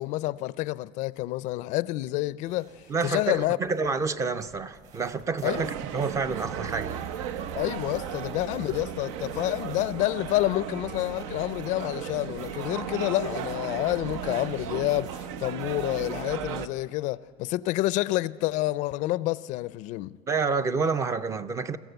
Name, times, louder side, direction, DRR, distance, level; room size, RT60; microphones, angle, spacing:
voice 1, 0.0-2.7 3.0-3.6 5.4-5.7 7.6-20.2, left 17 dB, 55° left, 0.4 m, -28 dB
sound 1, 2.5-16.2, right 5 dB, 50° right, 3.3 m, -52 dB
voice 2, 2.9-7.1 20.3-21.8, right 4 dB, 20° right, 0.5 m, -28 dB
sound 2, 5.5-16.7, right 8 dB, 85° right, 0.9 m, -35 dB
22.5 x 15.0 x 8.0 m
cardioid pair, 155°, 16 cm